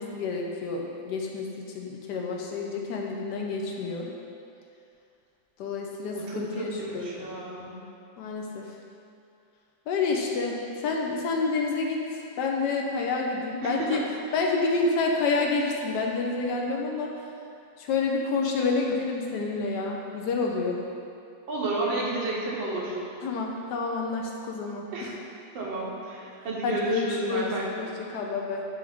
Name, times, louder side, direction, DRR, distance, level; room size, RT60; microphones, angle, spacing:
voice 1, 0.0-4.1 5.6-6.7 6.9-7.2 8.2-8.7 9.9-14.0 14.3-17.1 17.8-20.8 23.2-25.1 26.6-28.6, left 4 dB, 70° left, 0 dB, 1.2 m, -29 dB
voice 2, 6.1-7.8 13.6-14.0 21.5-23.0 24.9-25.1 25.5-27.7, right 2 dB, 80° right, -5 dB, 1.8 m, -31 dB
8.6 x 3.2 x 3.4 m, 2.6 s
omnidirectional pair, 2.1 m